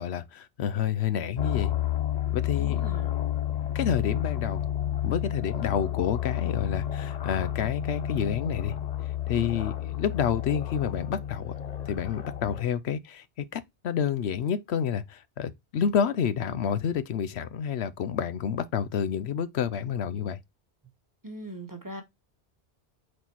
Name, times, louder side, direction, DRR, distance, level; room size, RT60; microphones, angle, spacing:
voice 1, 0.0-1.7 2.3-2.8 3.7-4.6 5.0-8.7 9.3-11.5 11.8-20.4, left 8 dB, 75° left, 0.9 m, -29 dB
sound 1, 1.4-12.6, left 11 dB, 45° left, 0.6 m, -31 dB
voice 2, 2.6-3.1 21.2-22.0, right 1 dB, 20° right, 1.2 m, -40 dB
6.4 x 4.2 x 4.5 m
omnidirectional pair, 1.1 m